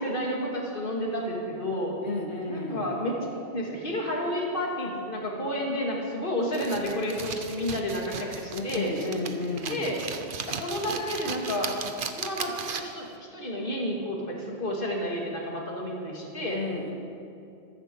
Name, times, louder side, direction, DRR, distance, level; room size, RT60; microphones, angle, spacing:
voice 1, 0.0-1.9 2.5-3.2 3.5-8.9 9.7-10.0 10.5-11.7 12.1-16.6, equal, 55° left, -2 dB, 2.7 m, -31 dB
voice 2, 2.0-2.9 8.5-9.9 16.4-16.9, left 3 dB, 85° left, 1 dB, 2.1 m, -32 dB
sound 1, 6.5-13.1, right 5 dB, 55° right, 1.0 m, -36 dB
15.0 x 14.5 x 5.5 m, 2.6 s
omnidirectional pair, 1.1 m